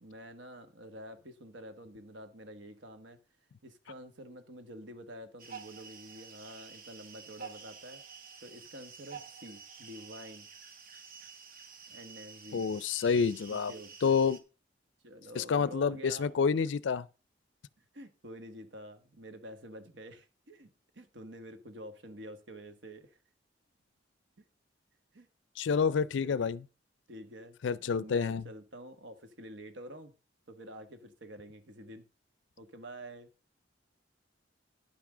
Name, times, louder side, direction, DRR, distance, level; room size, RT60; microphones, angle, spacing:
voice 1, 0.0-3.2 3.6-8.0 8.4-10.5 11.9-12.7 13.5-14.2 15.0-16.5 17.9-23.2 24.4-24.5 25.1-25.3 26.2-26.5 27.1-30.1 30.5-32.0 32.6-33.3, equal, 75° right, 1.4 m, -48 dB
sound 1, 5.4-14.4, right 6 dB, 50° right, 1.2 m, -50 dB
voice 2, 12.5-13.7 14.0-14.4 15.4-17.1 25.6-26.6 27.6-28.4, left 6 dB, 75° left, 0.4 m, -28 dB
10.5 x 6.0 x 4.9 m
head